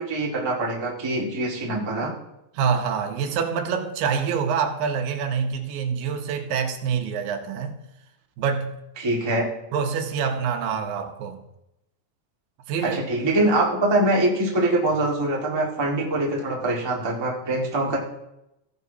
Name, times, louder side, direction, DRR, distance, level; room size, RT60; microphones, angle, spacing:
voice 1, 0.0-2.1 9.0-9.5 12.8-18.0, right 1 dB, 15° right, 0.9 m, -23 dB
voice 2, 2.5-7.8 8.4-8.8 9.7-11.4 12.7-13.0, right 6 dB, 85° right, 2.7 m, -26 dB
15.5 x 10.0 x 2.8 m
omnidirectional pair, 3.9 m